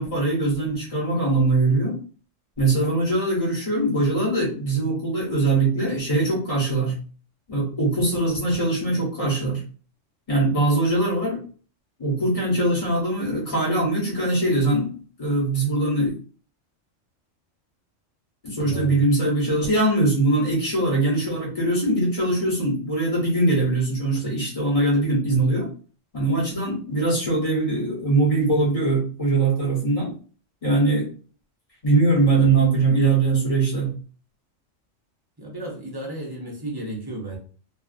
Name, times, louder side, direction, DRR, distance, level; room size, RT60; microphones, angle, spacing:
voice 1, 0.0-2.0 2.6-6.9 7.5-9.6 10.3-11.4 12.0-14.9 15.2-16.1 18.4-25.7 26.1-30.1 30.6-31.1 31.8-33.9, right 2 dB, 30° left, 0.9 m, -22 dB
voice 2, 18.5-19.0 35.4-37.4, right 1 dB, 40° right, 0.3 m, -33 dB
2.5 x 2.3 x 2.4 m
omnidirectional pair, 1.3 m